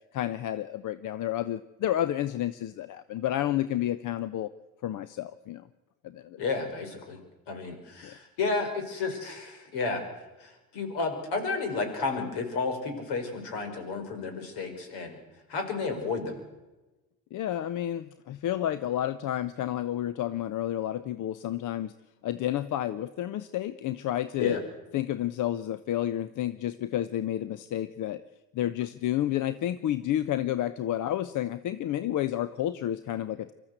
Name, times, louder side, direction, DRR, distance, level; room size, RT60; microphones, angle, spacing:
voice 1, 0.1-4.5 4.8-5.7 6.0-6.4 8.0-8.1 17.3-21.9 22.2-24.6 24.9-28.2 28.5-33.5, left 12 dB, 40° left, 14 dB, 0.9 m, -30 dB
voice 2, 6.4-7.2 7.5-10.0 10.4-15.2 15.5-16.4 24.4-24.6, left 4 dB, 60° left, 5 dB, 5.5 m, -32 dB
24.5 x 14.0 x 8.1 m, 1.1 s
hypercardioid pair, 75°, 45 cm